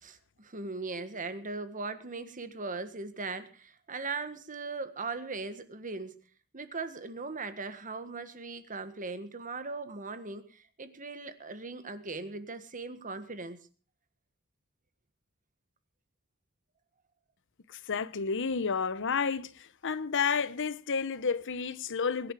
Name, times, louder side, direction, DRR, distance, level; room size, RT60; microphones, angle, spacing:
voice 1, 0.0-6.2 6.5-13.6, right 3 dB, 40° right, 1.6 m, -39 dB
voice 2, 17.9-22.3, left 5 dB, 60° left, 0.9 m, -31 dB
23.0 x 10.5 x 4.8 m
head